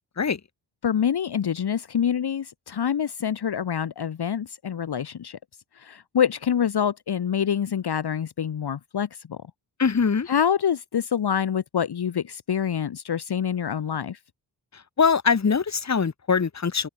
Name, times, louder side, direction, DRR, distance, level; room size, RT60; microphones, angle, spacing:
voice 1, 0.8-5.4 5.8-9.4 10.3-14.2, left 8 dB, 60° left, 1.2 m, -26 dB
voice 2, 9.8-10.3 15.0-16.9, left 5 dB, 35° left, 1.4 m, -22 dB
open air
cardioid pair, 65°, 45 cm